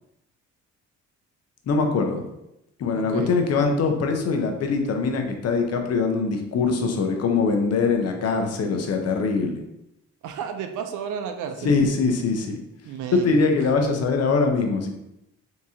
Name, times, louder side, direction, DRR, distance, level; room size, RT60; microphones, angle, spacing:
voice 1, 1.7-2.3 2.8-9.6 11.6-12.6 13.1-14.9, left 4 dB, 55° left, 4 dB, 0.7 m, -22 dB
voice 2, 2.9-3.4 10.2-11.8 12.8-13.5 13.7-13.8, right 7 dB, 80° right, 7 dB, 0.5 m, -33 dB
3.6 x 2.9 x 2.7 m, 0.86 s
cardioid pair, 90°, 30 cm